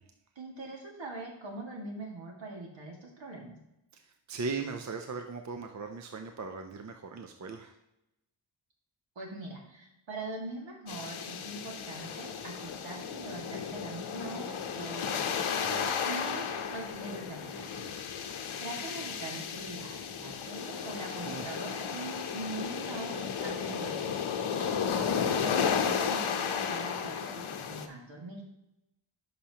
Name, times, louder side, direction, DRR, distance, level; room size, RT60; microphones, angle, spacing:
voice 1, 0.4-3.6 9.2-15.5 16.0-17.6 18.6-24.1 25.1-28.4, right 2 dB, 65° right, 0 dB, 2.0 m, -42 dB
voice 2, 4.3-7.7 15.6-16.1 17.5-18.0 21.2-21.5 23.7-23.8 24.0-24.2 24.6-25.0, right 4 dB, 35° right, 5 dB, 0.5 m, -39 dB
sound 1, 10.9-27.9, left 7 dB, 75° left, 0.8 m, -34 dB
10.5 x 5.7 x 2.9 m, 0.88 s
wide cardioid pair, 175°, 49 cm